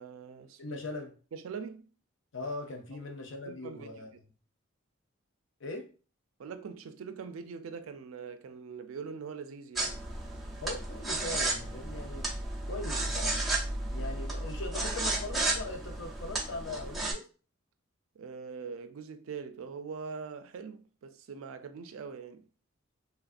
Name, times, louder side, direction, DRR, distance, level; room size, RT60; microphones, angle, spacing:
voice 1, 0.0-0.8 1.3-1.9 2.9-3.0 3.5-4.1 6.4-10.0 18.1-22.5, right 5 dB, 75° right, 0.4 m, -43 dB
voice 2, 0.6-1.1 2.3-4.1 5.6-5.9 10.6-12.3 12.7-13.4 13.9-17.3, left 2 dB, 65° left, 0.6 m, -40 dB
sound 1, 9.8-17.1, right 2 dB, ahead, 0.5 m, -33 dB
3.3 x 2.4 x 2.4 m
head